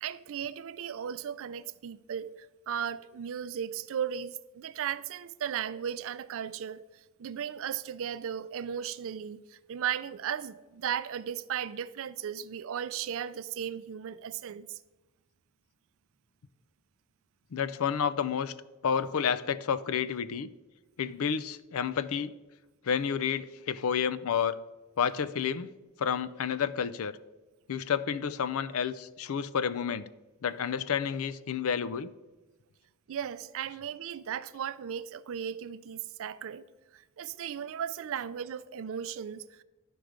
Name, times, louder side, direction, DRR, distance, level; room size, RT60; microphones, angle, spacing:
voice 1, 0.0-2.4 2.7-6.9 7.2-14.8 33.1-36.6 36.9-39.6, right 8 dB, 65° right, 0.4 m, -36 dB
voice 2, 17.5-18.5 18.8-20.5 21.0-22.3 22.8-24.6 25.0-25.7 26.0-27.2 27.7-30.1 30.4-32.1, left 7 dB, 70° left, 0.4 m, -30 dB
11.5 x 4.8 x 5.0 m
head